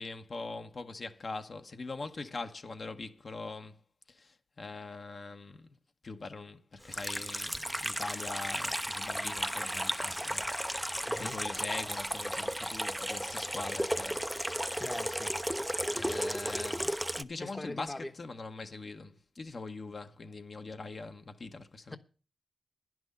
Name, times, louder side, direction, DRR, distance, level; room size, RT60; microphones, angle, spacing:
voice 1, 0.0-3.8 4.1-5.7 6.0-14.2 14.7-14.8 15.9-22.0, left 3 dB, 55° left, 1.0 m, -42 dB
Water tap faucet / Sink (filling or washing), 6.9-17.2, equal, ahead, 0.6 m, -34 dB
voice 2, 11.0-11.4 14.8-15.3 17.4-18.1 21.9-22.0, left 2 dB, 20° left, 1.0 m, -41 dB
10.5 x 6.2 x 8.6 m
cardioid pair, 70°, 0 cm